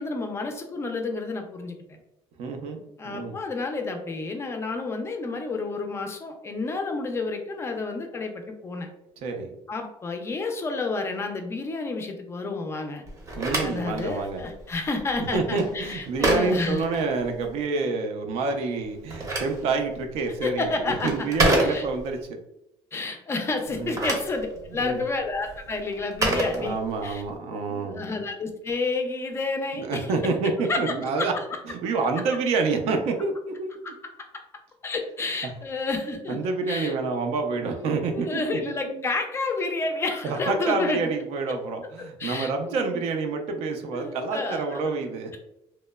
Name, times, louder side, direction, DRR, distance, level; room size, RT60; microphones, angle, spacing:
voice 1, 0.0-1.8 3.0-8.9 9.7-13.0 13.6-16.8 20.4-21.1 21.6-21.9 22.9-26.8 27.0-27.2 27.7-30.1 30.7-31.4 33.8-33.9 34.3-34.4 34.8-36.4 36.7-36.9 37.7-41.1 41.5-41.6 42.2-43.0 43.9-44.9, left 3 dB, 25° left, 4 dB, 0.4 m, -30 dB
voice 2, 2.4-3.4 9.2-9.5 13.3-14.4 15.3-22.2 23.7-23.9 24.8-25.0 26.5-28.0 29.8-31.3 31.7-33.9 36.3-39.1 40.2-45.4, right 4 dB, 70° right, 4 dB, 0.4 m, -28 dB
Telephone, 13.1-17.6 18.8-22.2 23.7-27.3, right 1 dB, 30° right, 0.6 m, -29 dB
2.9 x 2.0 x 2.2 m, 0.85 s
cardioid pair, 135°, 11 cm